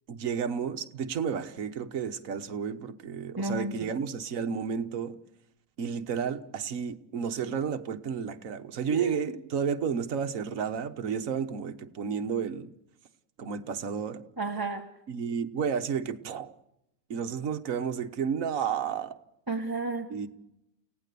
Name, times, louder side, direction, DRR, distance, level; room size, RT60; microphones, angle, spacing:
voice 1, 0.1-5.1 5.8-12.7 13.4-14.2 15.1-16.5 17.1-19.1 20.1-20.3, right 7 dB, 60° right, 7 dB, 1.5 m, -32 dB
voice 2, 3.4-3.9 8.9-9.3 14.4-14.9 19.5-20.1, right 2 dB, 15° right, 2 dB, 1.3 m, -32 dB
29.5 x 17.0 x 6.9 m, 0.82 s
omnidirectional pair, 1.7 m